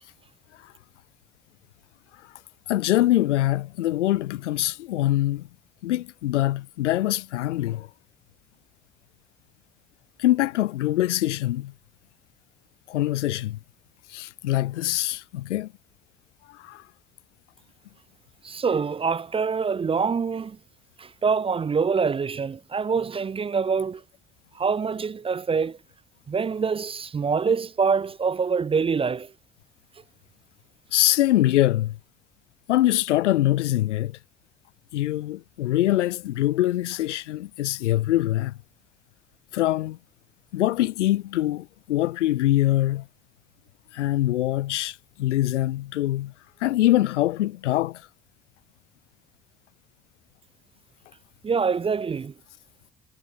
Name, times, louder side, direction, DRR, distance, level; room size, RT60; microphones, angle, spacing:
voice 1, 2.7-5.5 5.8-7.9 10.2-11.7 12.9-13.6 14.1-15.7 16.5-16.8 30.9-32.0 32.7-34.2 34.9-38.6 39.5-40.0 40.5-43.1 43.9-46.3 46.6-48.1, left 15 dB, 80° left, 1.0 m, -24 dB
voice 2, 18.4-20.6 21.0-24.0 24.5-25.8 26.3-29.3 51.4-52.3, right 5 dB, 15° right, 0.3 m, -25 dB
figure-of-eight pair, 45°, 35 cm